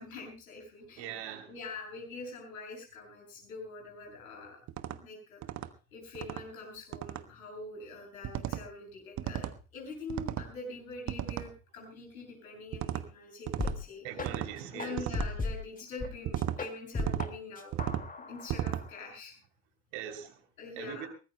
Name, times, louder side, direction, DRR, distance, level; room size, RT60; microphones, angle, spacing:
voice 1, 0.0-1.1 1.5-4.6 4.9-5.4 5.9-9.5 9.7-14.2 14.7-17.7 18.3-19.3 20.6-21.1, left 3 dB, 75° left, 0 dB, 7.7 m, -44 dB
voice 2, 1.0-1.5 14.0-15.0 19.9-20.4 20.8-21.1, right 9 dB, 60° right, 6 dB, 3.3 m, -41 dB
sound 1, 4.7-5.0 5.4-5.7 6.2-6.4 6.9-7.2 8.2-8.6 9.2-9.6 10.1-10.5 11.1-11.5 12.7-13.0 13.5-13.8 14.2-14.5 15.0-15.3 16.3-16.6 17.0-17.3 17.7-18.1 18.5-18.8, right 12 dB, 40° right, 1.1 m, -35 dB
sound 2, 13.6-13.8 14.1-14.3 14.8-16.1 16.4-17.3 17.6-19.1, left 3 dB, 20° left, 2.2 m, -36 dB
23.0 x 19.5 x 2.2 m, 0.33 s
figure-of-eight pair, 60°, 42 cm